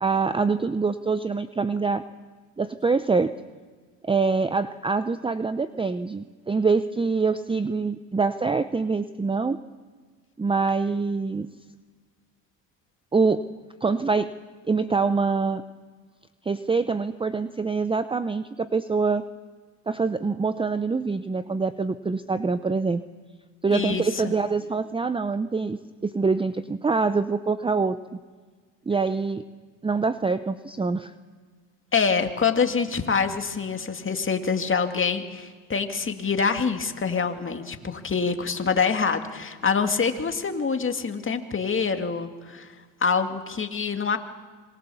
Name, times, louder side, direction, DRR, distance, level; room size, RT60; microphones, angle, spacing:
voice 1, 0.0-2.0 2.6-3.3 4.0-9.6 10.4-11.5 13.1-13.4 13.8-14.3 14.7-15.6 16.4-19.2 19.9-23.0 23.6-28.0 28.9-29.4 29.8-31.1, right 4 dB, 10° right, 12 dB, 0.7 m, -25 dB
voice 2, 23.7-24.3 31.9-42.7 43.0-44.2, left 5 dB, 25° left, 6 dB, 2.2 m, -25 dB
26.0 x 22.5 x 7.0 m, 1.5 s
supercardioid pair, 95°, 48 cm